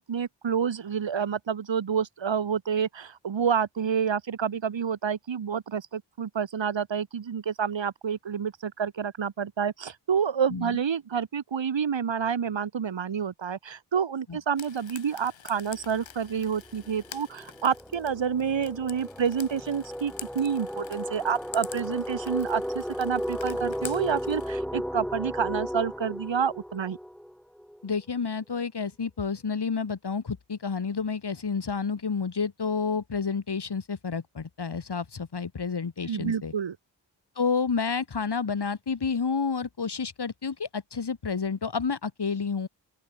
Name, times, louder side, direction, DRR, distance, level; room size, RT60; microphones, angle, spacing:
voice 1, 0.0-27.0 36.1-36.8, right 7 dB, 80° right, 4.4 m, -28 dB
voice 2, 10.5-10.8 14.3-14.4 27.8-36.5 37.4-42.7, left 5 dB, 60° left, 5.3 m, -30 dB
Frying (food), 14.6-24.5, left 8 dB, 90° left, 6.8 m, -46 dB
sound 1, 15.8-16.0 16.3-27.9, equal, ahead, 2.5 m, -35 dB
open air
cardioid pair, 40°, 44 cm